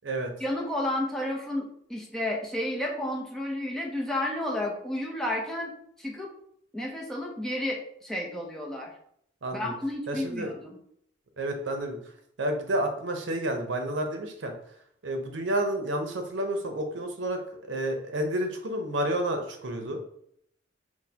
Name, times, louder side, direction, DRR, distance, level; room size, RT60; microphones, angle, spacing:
voice 1, 0.4-5.7 6.0-6.3 6.7-8.9 9.5-10.8, left 1 dB, 5° left, -2 dB, 0.6 m, -31 dB
voice 2, 9.4-9.7 10.1-10.5 11.4-12.0 12.4-14.5 15.0-17.4 17.7-20.0, right 1 dB, 75° right, 4 dB, 0.7 m, -30 dB
6.2 x 2.1 x 2.8 m, 0.69 s
head